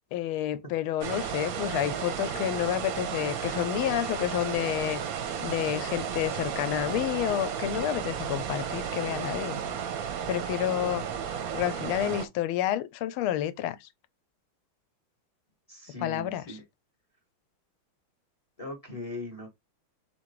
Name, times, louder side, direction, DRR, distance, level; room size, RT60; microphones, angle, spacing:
voice 1, 0.1-5.0 5.4-9.6 10.3-11.0 11.5-13.9 16.0-16.6, left 12 dB, 90° left, 1.4 m, -29 dB
sound 1, 1.0-12.3, right 8 dB, 65° right, 0.9 m, -33 dB
voice 2, 15.7-16.6 18.6-19.5, left 2 dB, 35° left, 0.6 m, -39 dB
4.2 x 3.6 x 3.0 m
omnidirectional pair, 2.3 m